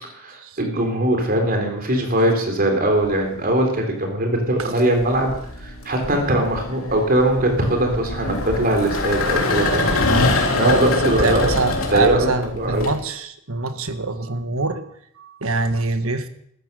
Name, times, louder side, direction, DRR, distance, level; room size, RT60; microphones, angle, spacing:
voice 1, 0.1-10.0 10.5-11.5 11.9-12.9, right 1 dB, 45° right, 3 dB, 3.8 m, -21 dB
sound 1, 3.0-3.5 4.6-12.9, left 2 dB, 75° left, 3.4 m, -24 dB
voice 2, 10.6-10.9 11.2-14.8 15.2-16.3, right 3 dB, 75° right, 9 dB, 1.7 m, -24 dB
14.5 x 13.5 x 6.8 m, 0.67 s
head